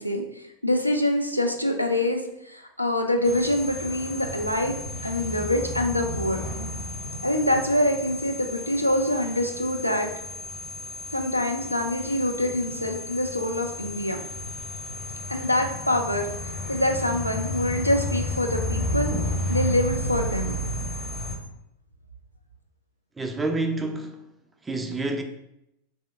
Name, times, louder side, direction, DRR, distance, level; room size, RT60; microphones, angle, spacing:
voice 1, 0.0-4.7 5.0-6.4 7.2-10.1 11.1-14.2 15.3-19.1 19.5-20.5, left 1 dB, 90° left, 0.3 m, -25 dB
sound 1, 3.2-21.4, left 1 dB, 30° left, 0.7 m, -32 dB
voice 2, 23.2-24.2 24.6-25.2, right 2 dB, 10° right, 0.3 m, -28 dB
3.1 x 2.7 x 2.3 m
figure-of-eight pair, 90°, 0 cm